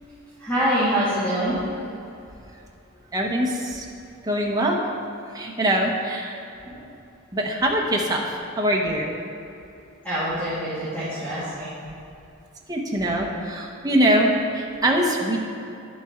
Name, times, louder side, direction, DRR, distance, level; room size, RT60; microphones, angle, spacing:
voice 1, 0.4-1.6 6.6-6.8 10.0-11.8, equal, 10° left, -14 dB, 2.0 m, -25 dB
voice 2, 3.1-3.8 4.2-4.8 5.3-6.3 7.3-9.1 12.7-15.4, right 1 dB, 20° right, -1 dB, 0.9 m, -23 dB
10.5 x 7.3 x 3.7 m, 2.8 s
head